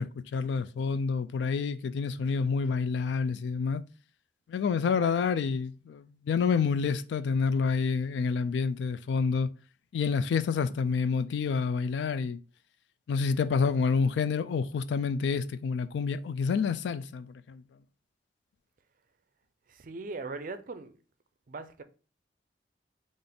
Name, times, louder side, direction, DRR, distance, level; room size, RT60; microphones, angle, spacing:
voice 1, 0.0-3.8 4.5-9.5 9.9-12.4 13.1-17.6, left 5 dB, 75° left, 0.3 m, -28 dB
voice 2, 19.7-21.0 21.5-21.8, right 3 dB, 45° right, 0.4 m, -39 dB
3.5 x 2.5 x 3.8 m
head